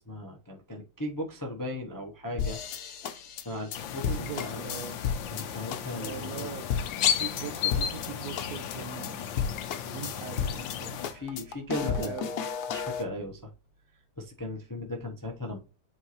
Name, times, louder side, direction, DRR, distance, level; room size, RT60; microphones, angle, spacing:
voice 1, 0.0-2.6 3.4-4.6 5.3-6.5 10.9-12.1 12.7-13.5 14.2-15.6, left 1 dB, 25° left, 0.4 m, -37 dB
sound 1, 2.4-5.4 5.7-6.1 6.4-6.5 6.7-8.1 8.4-8.8 9.0-9.1 9.4-10.8 11.0-13.0, left 7 dB, 65° left, 1.2 m, -33 dB
sound 2, 3.7-11.1, left 9 dB, 90° left, 1.5 m, -34 dB
voice 2, 4.1-5.0 5.9-6.7 7.2-9.2 9.9-10.9 11.8-12.4, right 9 dB, 75° right, 0.8 m, -40 dB
7.9 x 3.9 x 3.1 m
omnidirectional pair, 2.0 m